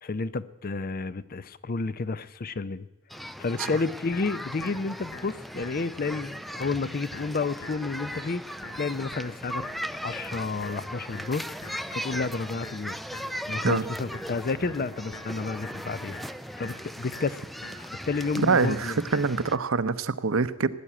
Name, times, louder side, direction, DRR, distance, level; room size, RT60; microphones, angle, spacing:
voice 1, 0.0-2.9 3.4-8.4 8.8-9.6 10.0-11.4 11.9-13.0 13.5-16.1 16.6-17.4 17.8-19.0, left 4 dB, 45° left, 16 dB, 0.6 m, -31 dB
sound 1, 3.1-19.6, equal, ahead, 0.4 m, -38 dB
sound 2, 3.6-19.6, left 2 dB, 90° left, 2.0 m, -46 dB
voice 2, 18.4-20.7, right 4 dB, 85° right, 14 dB, 0.8 m, -24 dB
17.5 x 9.6 x 8.8 m, 1.0 s
head